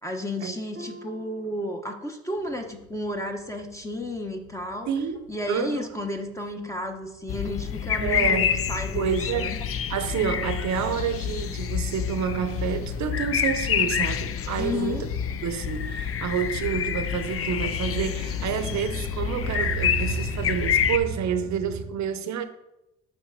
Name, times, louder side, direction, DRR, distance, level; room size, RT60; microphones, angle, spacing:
voice 1, 0.0-4.9 5.3-9.6 14.6-15.1, left 1 dB, 10° left, 1.1 m, -32 dB
Harp, 0.8-2.5 2.9-3.3 3.8-4.0, equal, 40° right, 1.0 m, -47 dB
sound 1, 2.4-9.0 9.4-10.5 10.9-11.0 11.3-11.4 11.7-13.5 13.8-21.9, right 5 dB, 75° left, 2.0 m, -39 dB
voice 2, 4.9-6.0 8.0-8.7 8.9-9.6 9.9-15.0 15.4-22.4, right 7 dB, 65° right, 0.9 m, -29 dB
sound 2, 7.3-21.0, left 8 dB, 50° left, 0.6 m, -28 dB
6.1 x 5.0 x 6.5 m
cardioid pair, 90°, 30 cm